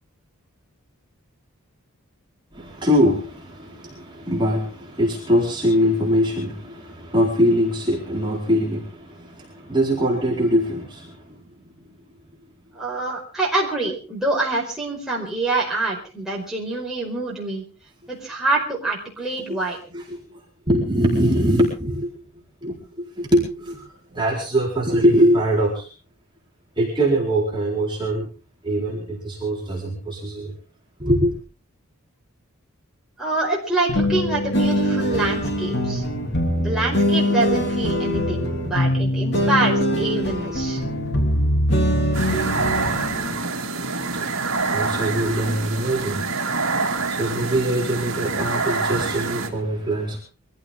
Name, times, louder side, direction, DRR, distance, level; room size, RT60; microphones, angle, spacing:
voice 1, 2.5-11.4 19.9-20.2 20.7-22.1 22.6-25.9 26.8-28.3 28.6-30.5 31.0-31.3 42.5-42.9 43.8-50.2, equal, 20° right, -3 dB, 4.3 m, -23 dB
voice 2, 12.7-17.6 18.1-19.8 33.2-36.0 36.6-40.8, right 2 dB, 5° right, -4 dB, 4.9 m, -26 dB
sound 1, 33.9-43.4, left 1 dB, 50° left, 3.2 m, -22 dB
sound 2, 42.1-49.5, right 4 dB, 60° right, 2.4 m, -26 dB
23.5 x 15.0 x 3.6 m, 0.36 s
head